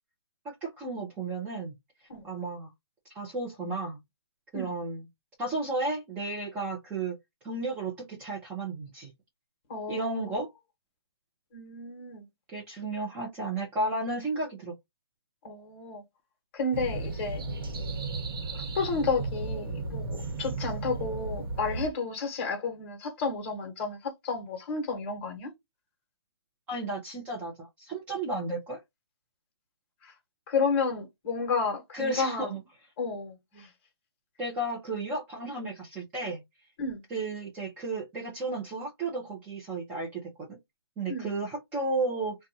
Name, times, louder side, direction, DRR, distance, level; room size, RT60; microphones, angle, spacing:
voice 1, 0.4-1.7 2.2-2.7 3.1-4.0 4.5-5.1 5.4-7.2 7.4-9.1 9.9-10.5 12.5-14.7 26.7-28.8 31.9-32.6 34.4-36.4 37.1-40.6 41.0-42.4, right 2 dB, 10° right, 0.5 m, -33 dB
voice 2, 9.7-10.3 11.5-12.3 15.4-16.0 16.5-17.4 18.7-25.5 30.0-30.1 30.5-32.5 33.0-33.7 36.8-37.0 41.1-41.3, left 4 dB, 25° left, 1.0 m, -31 dB
sound 1, 16.7-21.9, right 3 dB, 60° right, 1.1 m, -34 dB
2.5 x 2.2 x 2.6 m
hypercardioid pair, 155°, 13 cm